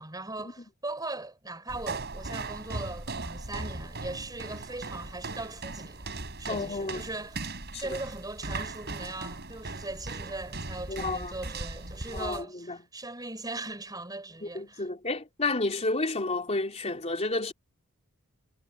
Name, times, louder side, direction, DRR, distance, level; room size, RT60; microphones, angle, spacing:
voice 1, 0.0-6.1 6.4-7.5 7.8-14.9, right 2 dB, 20° right, 5.2 m, -39 dB
sound 1, 1.7-12.4, right 3 dB, 50° right, 6.7 m, -38 dB
voice 2, 6.5-7.0 7.7-8.0 10.9-11.3 12.1-12.8 14.4-17.5, left 2 dB, 30° left, 3.6 m, -31 dB
head